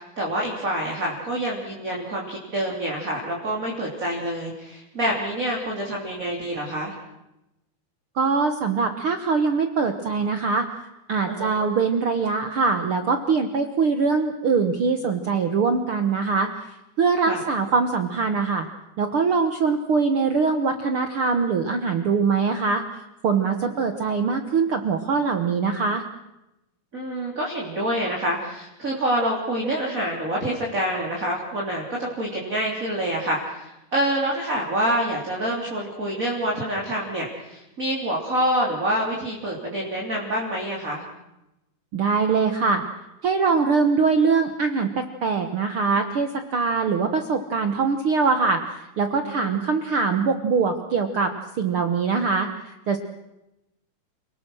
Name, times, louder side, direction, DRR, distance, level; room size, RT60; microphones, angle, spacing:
voice 1, 0.0-6.9 11.3-11.5 17.3-17.4 23.5-23.8 26.9-41.0 49.2-49.6, right 1 dB, 20° right, -2 dB, 3.1 m, -27 dB
voice 2, 8.1-10.7 11.1-16.5 17.0-18.7 19.0-26.0 41.9-42.8 43.2-53.0, right 5 dB, 75° right, 7 dB, 1.2 m, -23 dB
29.0 x 19.5 x 6.3 m, 0.93 s
omnidirectional pair, 4.4 m